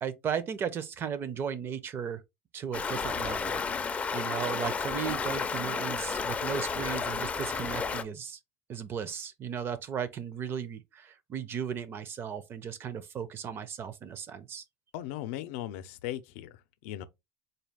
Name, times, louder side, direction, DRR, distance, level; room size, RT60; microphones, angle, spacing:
voice 1, 0.0-2.2 2.5-8.4 8.7-14.6, right 7 dB, 35° right, 0.5 m, -36 dB
Stream, 2.7-8.0, left 5 dB, 20° left, 0.4 m, -32 dB
voice 2, 14.9-17.0, left 13 dB, 85° left, 0.5 m, -38 dB
4.0 x 2.3 x 3.4 m
cardioid pair, 135°, 7 cm